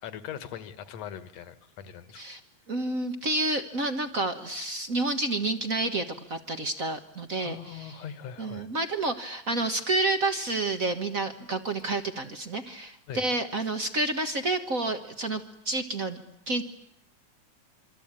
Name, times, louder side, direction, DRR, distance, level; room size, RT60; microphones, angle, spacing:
voice 1, 0.0-2.2 7.4-8.7 10.4-10.5 13.1-13.2, left 9 dB, 65° left, 13 dB, 2.5 m, -41 dB
voice 2, 2.7-8.0 8.4-16.6, right 2 dB, 45° right, 8 dB, 1.2 m, -29 dB
27.0 x 24.5 x 8.9 m, 0.74 s
omnidirectional pair, 3.3 m